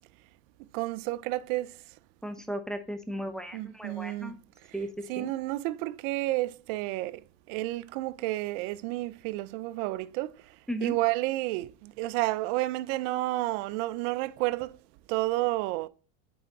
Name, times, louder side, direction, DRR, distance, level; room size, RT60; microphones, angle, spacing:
voice 1, 0.7-1.7 3.5-4.4 5.1-7.2 7.5-10.3 10.8-14.7 15.1-15.9, right 18 dB, 65° right, 0.5 m, -30 dB
voice 2, 2.2-4.4 4.7-4.9 5.2-5.3 10.7-11.0, equal, ahead, 0.4 m, -35 dB
8.7 x 3.4 x 3.8 m
supercardioid pair, 125°, 41 cm